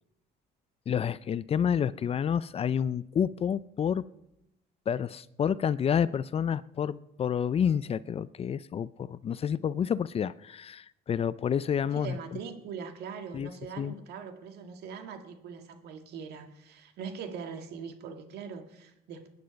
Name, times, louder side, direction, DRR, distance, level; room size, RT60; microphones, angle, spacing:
voice 1, 0.9-4.0 4.9-12.4 13.3-13.5 13.8-13.9, left 8 dB, 35° left, 0.4 m, -29 dB
voice 2, 11.9-19.3, right 6 dB, 75° right, 1.9 m, -41 dB
20.5 x 9.7 x 5.2 m
cardioid pair, 110°, 17 cm